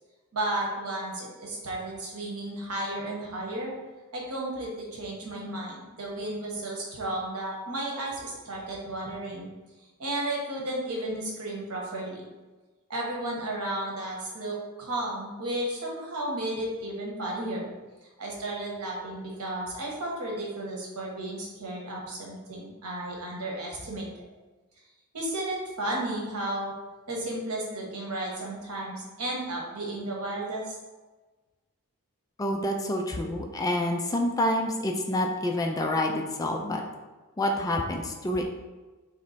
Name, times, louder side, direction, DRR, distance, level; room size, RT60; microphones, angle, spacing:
voice 1, 0.3-3.7 4.1-9.5 10.0-12.2 12.9-17.7 18.2-24.3 25.1-26.7 27.1-30.8, right 1 dB, 85° right, -2 dB, 1.1 m, -33 dB
voice 2, 32.4-36.8 37.4-38.4, left 1 dB, 15° left, 2 dB, 0.3 m, -27 dB
3.2 x 3.1 x 4.0 m, 1.2 s
head